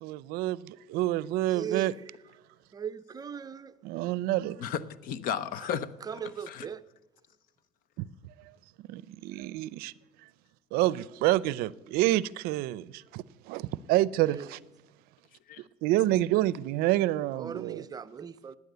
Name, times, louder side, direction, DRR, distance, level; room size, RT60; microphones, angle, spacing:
voice 1, 0.0-1.9 3.8-4.6 8.0-8.1 8.9-9.9 10.7-14.6 15.8-17.9, right 16 dB, 75° right, 0.5 m, -28 dB
voice 2, 1.5-1.9 2.7-3.7 6.1-6.8 17.4-18.6, right 7 dB, 25° right, 0.5 m, -38 dB
voice 3, 4.6-6.7 15.5-15.6, left 8 dB, 60° left, 0.8 m, -35 dB
16.0 x 9.7 x 8.0 m
cardioid pair, 130°, 16 cm